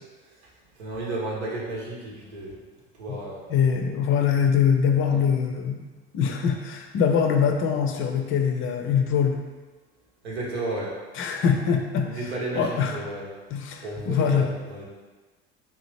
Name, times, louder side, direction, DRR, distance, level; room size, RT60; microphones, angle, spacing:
voice 1, 0.8-2.6 2.9-3.4 10.2-11.0 12.0-13.3 13.8-14.8, right 2 dB, 80° right, -4 dB, 1.0 m, -33 dB
voice 2, 3.5-5.8 6.1-9.4 11.2-12.1 12.5-13.0 13.5-14.5, left 7 dB, 40° left, 4 dB, 0.5 m, -23 dB
3.6 x 2.9 x 3.1 m, 1.2 s
hypercardioid pair, 65°, 32 cm